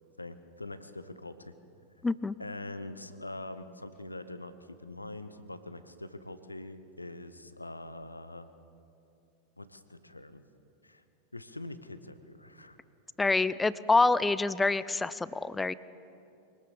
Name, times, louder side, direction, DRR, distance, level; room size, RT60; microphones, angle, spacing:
voice 1, 0.2-1.5 2.4-8.5 9.6-10.4 10.8-11.0 11.3-12.8, left 2 dB, 85° left, 12 dB, 1.0 m, -44 dB
voice 2, 2.0-2.4 13.2-15.7, left 3 dB, 10° left, 17 dB, 0.6 m, -26 dB
24.0 x 18.5 x 7.1 m, 2.7 s
figure-of-eight pair, 90°, 0 cm